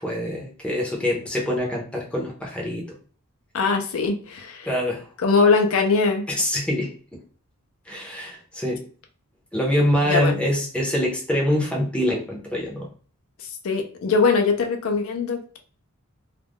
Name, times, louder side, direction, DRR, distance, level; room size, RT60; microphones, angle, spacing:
voice 1, 0.0-2.8 4.6-5.0 6.3-6.9 7.9-8.8 9.5-12.9, equal, 5° left, -2 dB, 0.6 m, -24 dB
voice 2, 3.5-4.8 5.2-6.2 10.0-10.4 13.4-15.6, left 4 dB, 70° left, 4 dB, 0.4 m, -21 dB
2.4 x 2.1 x 3.4 m, 0.42 s
head